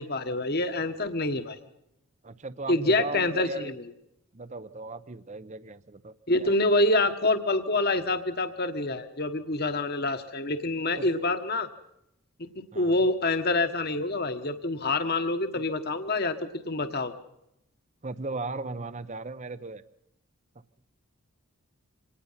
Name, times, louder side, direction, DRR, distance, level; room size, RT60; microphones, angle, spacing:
voice 1, 0.0-1.6 2.7-3.7 6.3-11.7 12.4-12.5 12.7-17.1, left 2 dB, 45° left, 8 dB, 1.4 m, -26 dB
voice 2, 2.2-3.7 4.3-6.6 11.0-11.1 12.7-13.0 18.0-19.8, right 3 dB, 30° right, 14 dB, 0.7 m, -37 dB
25.5 x 19.0 x 5.7 m, 0.82 s
head